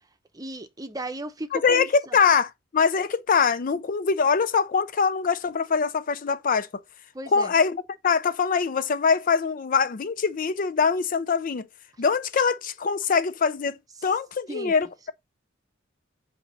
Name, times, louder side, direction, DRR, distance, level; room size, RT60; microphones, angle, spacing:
voice 1, 0.3-1.9 7.1-7.5 14.5-14.7, right 1 dB, 20° right, 0.7 m, -35 dB
voice 2, 1.5-6.7 7.3-11.7 12.0-15.1, left 5 dB, 45° left, 0.4 m, -23 dB
8.3 x 2.9 x 5.2 m
head